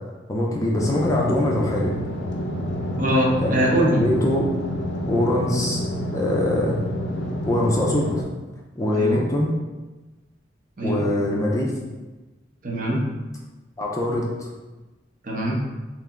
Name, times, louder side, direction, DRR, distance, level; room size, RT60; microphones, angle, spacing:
voice 1, 0.3-1.9 3.4-3.7 3.9-4.4 5.1-5.8 6.1-6.8 7.5-8.2 8.8-9.5 10.8-11.7 13.8-14.5, left 1 dB, 15° left, -2 dB, 0.4 m, -23 dB
sound 1, 0.7-8.2, equal, 80° left, 0.5 m, -28 dB
voice 2, 3.0-4.0 8.9-9.2 10.8-11.0 12.6-13.0 15.2-15.6, equal, 45° right, -3 dB, 0.7 m, -22 dB
3.3 x 2.9 x 3.6 m, 1.2 s
head